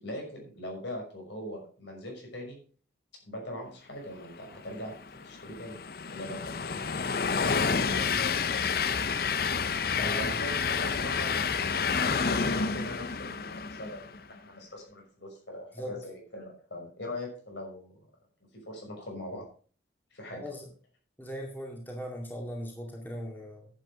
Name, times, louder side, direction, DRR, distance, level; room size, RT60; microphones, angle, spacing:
voice 1, 0.0-2.6 3.2-5.8 6.1-7.2 7.5-8.1 10.0-18.1 18.5-19.5 20.1-20.4, left 1 dB, 75° left, 1 dB, 6.1 m, -41 dB
Train, 4.8-14.2, left 5 dB, 50° left, 0.6 m, -29 dB
voice 2, 7.4-8.0 10.0-10.2 15.8-15.9 20.4-20.7 21.2-23.7, equal, 10° left, 0 dB, 2.1 m, -39 dB
10.5 x 8.3 x 5.3 m, 0.42 s
head